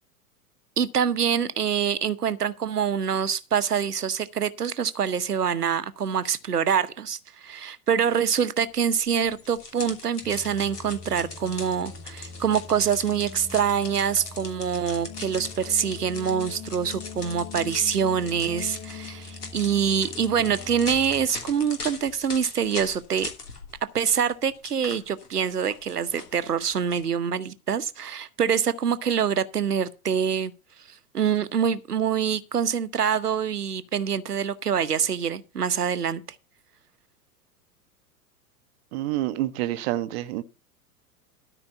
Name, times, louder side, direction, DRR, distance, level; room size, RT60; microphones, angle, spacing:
voice 1, 0.8-23.3 23.9-30.5 31.1-36.2, right 7 dB, 80° right, 1.0 m, -25 dB
sound 1, 9.2-23.8 24.1-27.1, left 4 dB, 80° left, 3.0 m, -40 dB
sound 2, 10.2-22.2, left 5 dB, 15° left, 4.4 m, -42 dB
voice 2, 38.9-40.4, right 15 dB, 45° right, 0.9 m, -28 dB
13.0 x 5.2 x 6.9 m
figure-of-eight pair, 95°, 46 cm